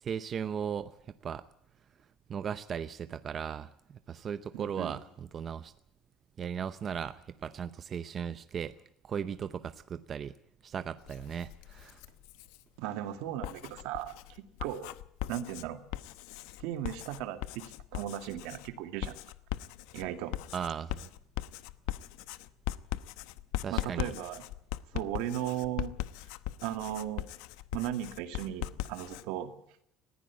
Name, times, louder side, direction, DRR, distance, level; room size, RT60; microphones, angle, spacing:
voice 1, 0.0-0.9 1.2-1.4 2.3-5.7 6.4-8.7 9.0-10.4 10.6-12.0 20.5-21.1 23.6-24.1, right 7 dB, 30° right, 12 dB, 0.7 m, -37 dB
voice 2, 4.5-5.0 12.8-14.9 15.3-15.8 16.6-17.6 17.9-19.2 19.9-20.4 23.7-24.4 24.9-25.9 26.6-27.3 27.7-29.5, right 11 dB, 80° right, 8 dB, 2.1 m, -36 dB
Writing, 11.0-12.6 13.3-29.3, left 15 dB, 85° left, 0.9 m, -40 dB
20.0 x 15.5 x 8.4 m, 0.72 s
cardioid pair, 155°, 0 cm